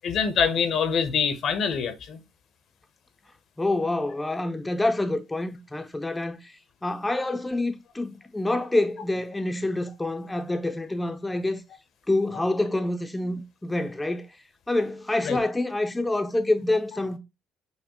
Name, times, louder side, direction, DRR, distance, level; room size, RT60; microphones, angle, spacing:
voice 1, 0.0-2.2 15.2-15.4, left 6 dB, 65° left, 0.6 m, -25 dB
voice 2, 3.6-11.6 12.1-14.3 14.7-17.2, left 2 dB, 15° left, 0.4 m, -27 dB
5.5 x 2.1 x 2.9 m
supercardioid pair, 75°, 0 cm